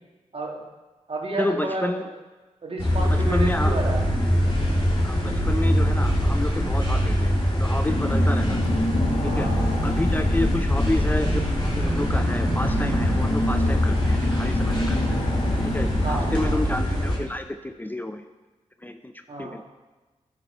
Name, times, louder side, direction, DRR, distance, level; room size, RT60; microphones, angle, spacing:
voice 1, 0.3-0.6 1.1-2.1 2.6-4.0 9.2-9.9 16.0-16.6 19.3-19.6, right 2 dB, 50° right, 0 dB, 1.9 m, -31 dB
voice 2, 1.4-2.1 3.1-3.8 5.0-8.6 9.2-9.5 9.8-15.0 15.6-18.2 18.8-19.1 19.4-19.6, left 1 dB, 15° left, 8 dB, 0.5 m, -30 dB
sound 1, 2.8-17.2, equal, 35° left, 2.9 m, -23 dB
Car / Engine, 7.9-17.0, left 1 dB, 60° left, 1.7 m, -29 dB
9.7 x 5.2 x 5.4 m, 1.2 s
supercardioid pair, 45°, 13 cm